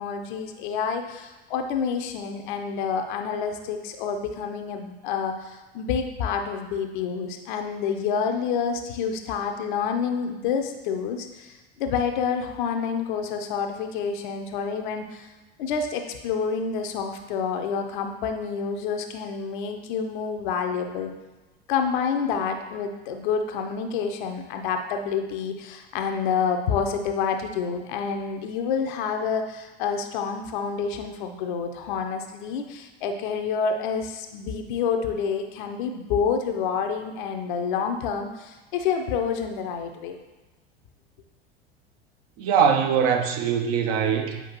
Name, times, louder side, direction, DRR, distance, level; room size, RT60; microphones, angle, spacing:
voice 1, 0.0-15.3 15.6-21.1 21.7-40.2, left 6 dB, 50° left, 5 dB, 0.7 m, -28 dB
voice 2, 42.4-44.4, right 7 dB, 40° right, 5 dB, 0.7 m, -22 dB
8.2 x 4.8 x 2.9 m, 1.2 s
figure-of-eight pair, 80°, 32 cm